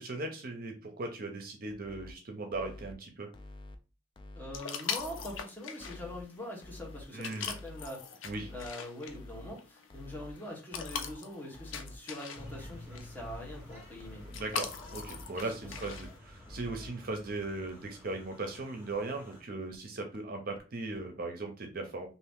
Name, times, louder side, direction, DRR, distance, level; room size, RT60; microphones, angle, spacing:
voice 1, 0.0-3.3 7.1-7.5 8.2-8.5 14.3-22.1, right 2 dB, 50° right, 4 dB, 0.6 m, -38 dB
sound 1, 1.7-2.1 2.5-2.9 3.3-3.8 4.2-4.6 5.0-5.4 5.8-6.2 6.6-7.0 7.4-7.9 8.3-8.7 9.1-9.5 9.9-10.3 10.7-11.1 11.5-12.0 12.4-12.8 13.2-13.6 14.0-14.4 14.8-15.3 15.6-16.1 16.5-16.9 17.3-17.4 17.7-17.8 18.1-18.2 18.5-18.6 18.9-19.0 19.3-19.4 19.7-19.8 20.1-20.2 20.6-20.7 21.0-21.1, left 1 dB, 25° left, 0.3 m, -48 dB
voice 2, 4.3-14.2 15.4-15.8, left 1 dB, 10° left, -2 dB, 1.0 m, -44 dB
sound 2, 4.5-16.2, left 6 dB, 80° left, 0.5 m, -42 dB
sound 3, 12.3-19.4, left 1 dB, 10° right, 1.6 m, -51 dB
2.8 x 2.5 x 3.5 m, 0.34 s
head